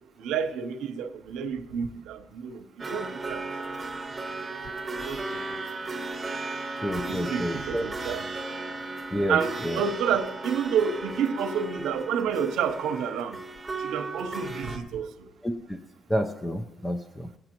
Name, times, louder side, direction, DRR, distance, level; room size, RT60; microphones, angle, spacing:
voice 1, 0.2-3.4 5.0-5.2 7.1-8.3 9.3-13.4 13.8-15.1, right 7 dB, 90° right, 0.7 m, -29 dB
sound 1, 2.8-14.8, right 3 dB, 20° right, 1.1 m, -35 dB
voice 2, 6.8-7.9 9.1-9.4 9.6-9.8 15.4-15.8 16.1-17.3, equal, 15° left, 0.7 m, -29 dB
18.5 x 9.0 x 3.0 m
cardioid pair, 90°, 0 cm